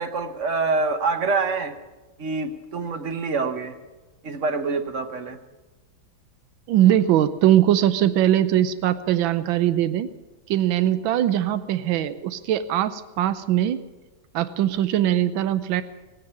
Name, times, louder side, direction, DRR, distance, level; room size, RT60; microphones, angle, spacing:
voice 1, 0.0-1.7 2.2-3.7 4.2-5.4, right 4 dB, 50° right, 8 dB, 1.1 m, -26 dB
voice 2, 6.7-10.1 10.5-13.8 14.3-15.8, right 12 dB, 85° right, 13 dB, 1.5 m, -21 dB
17.0 x 9.8 x 8.6 m, 1.2 s
omnidirectional pair, 2.1 m